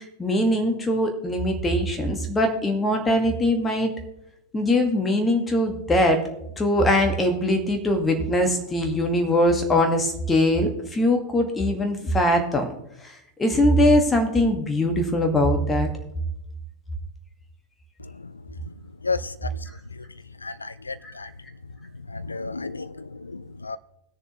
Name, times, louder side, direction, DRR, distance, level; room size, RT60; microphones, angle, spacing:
voice 1, 0.2-3.9 4.5-6.2 6.6-12.7 13.4-15.9 21.0-21.1, left 1 dB, 15° left, 1.6 m, -21 dB
voice 2, 19.0-19.5 20.4-21.3 22.1-23.8, left 4 dB, 80° left, 0.4 m, -32 dB
19.5 x 6.9 x 3.0 m
figure-of-eight pair, 90°, 0 cm